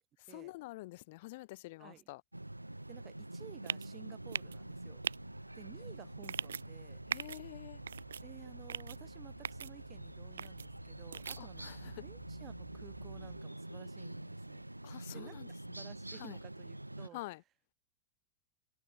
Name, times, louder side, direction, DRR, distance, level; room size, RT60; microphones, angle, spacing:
voice 1, 0.3-2.2 7.1-7.8 11.4-11.9 14.8-15.5 16.2-16.4 17.1-17.4, left 20 dB, 50° left, 0.5 m, -47 dB
sound 1, 2.3-17.1, right 1 dB, 85° right, 1.0 m, -47 dB
voice 2, 2.9-5.0 5.5-7.0 8.2-14.7 15.1-17.2, right 12 dB, 30° right, 3.0 m, -55 dB
sound 2, 3.7-3.9 4.3-4.6 5.0-5.2 6.2-6.6 7.1-7.4 7.9-8.2 8.7-9.0 9.4-9.7 10.4-10.7 11.1-11.4, right 7 dB, 70° right, 0.4 m, -38 dB
sound 3, 4.2-13.4, right 4 dB, 15° right, 3.3 m, -62 dB
figure-of-eight pair, 90°, 0 cm